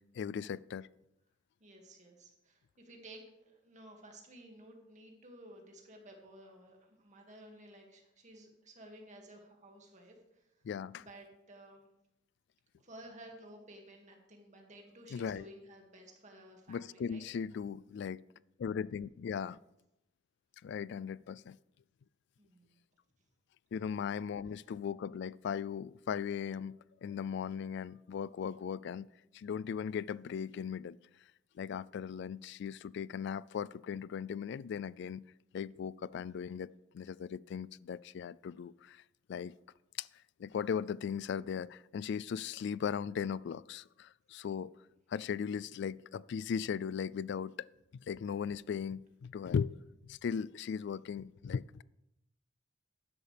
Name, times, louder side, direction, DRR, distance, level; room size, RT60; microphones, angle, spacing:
voice 1, 0.1-0.9 10.6-11.1 15.1-15.5 16.7-18.2 18.6-19.6 20.6-21.6 23.7-29.1 29.3-31.0 31.6-35.2 35.5-36.7 36.9-39.0 39.3-39.5 40.0-40.1 40.4-44.7 45.1-47.7 48.1-49.8 50.0-51.8, left 7 dB, 65° left, 0.3 m, -38 dB
voice 2, 1.6-10.5 11.0-11.9 12.8-17.2 22.4-22.8 23.8-24.2 24.6-24.7, right 1 dB, 40° right, 2.2 m, -54 dB
12.5 x 10.5 x 3.4 m
head